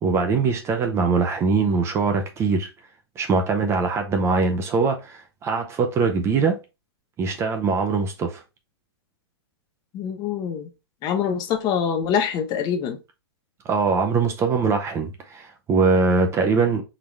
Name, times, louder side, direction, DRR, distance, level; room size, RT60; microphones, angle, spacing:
voice 1, 0.0-2.7 3.2-6.6 7.2-8.4 13.7-16.8, right 4 dB, 20° right, 0.6 m, -22 dB
voice 2, 9.9-10.7 11.0-13.0, left 7 dB, 30° left, 0.7 m, -24 dB
3.9 x 2.9 x 3.1 m
figure-of-eight pair, 110°, 14 cm